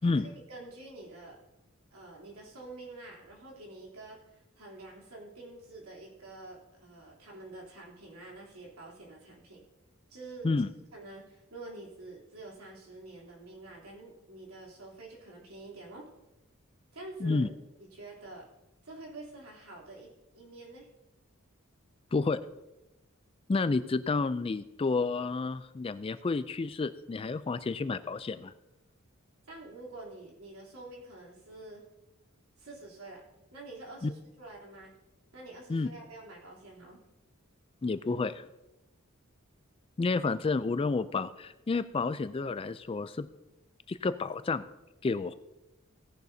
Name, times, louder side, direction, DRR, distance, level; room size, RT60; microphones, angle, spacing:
voice 1, 0.0-1.4 1.9-9.6 10.1-10.5 10.9-16.1 16.9-17.5 17.8-18.5 18.8-20.1 20.3-20.9 29.5-31.9 32.6-33.2 33.5-34.9 35.3-37.0, right 2 dB, 90° right, -2 dB, 3.3 m, -47 dB
voice 2, 23.5-28.5 34.0-34.1 35.7-35.9 37.8-38.4 40.0-43.3 43.9-44.6 45.0-45.3, left 3 dB, 25° left, 13 dB, 0.3 m, -30 dB
17.0 x 10.5 x 2.7 m, 0.96 s
head